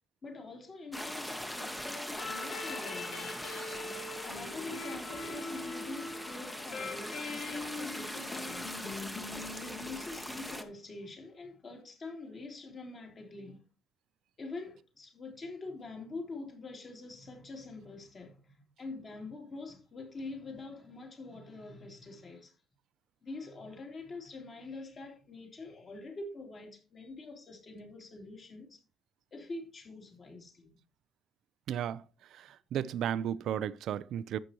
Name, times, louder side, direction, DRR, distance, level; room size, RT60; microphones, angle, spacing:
voice 1, 0.2-3.4 3.8-8.8 9.3-13.6 14.4-22.5 23.2-28.8 29.3-30.8 32.4-32.5, left 3 dB, 35° left, 3.4 m, -45 dB
sound 1, 0.9-10.6, equal, 5° left, 1.1 m, -41 dB
sound 2, 2.1-10.6, left 3 dB, 75° left, 2.1 m, -42 dB
voice 2, 31.7-32.0 32.4-34.4, right 10 dB, 70° right, 0.5 m, -34 dB
11.5 x 8.2 x 3.0 m
cardioid pair, 145°, 0 cm